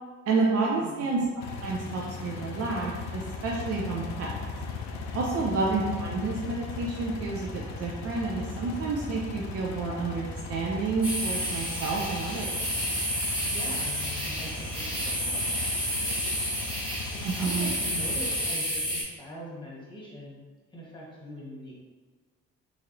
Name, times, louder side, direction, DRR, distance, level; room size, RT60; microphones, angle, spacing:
voice 1, 0.3-1.3 1.6-4.5 5.1-12.6 17.2-17.7, right 3 dB, 55° right, -2 dB, 0.5 m, -30 dB
sound 1, 1.4-18.5, left 3 dB, 65° left, 0.5 m, -38 dB
sound 2, 11.0-19.0, equal, 15° right, 1.3 m, -30 dB
voice 2, 13.4-16.7 17.1-20.3 20.7-21.7, equal, 15° left, -6 dB, 1.1 m, -42 dB
3.1 x 2.8 x 2.5 m, 1.5 s
cardioid pair, 90°, 30 cm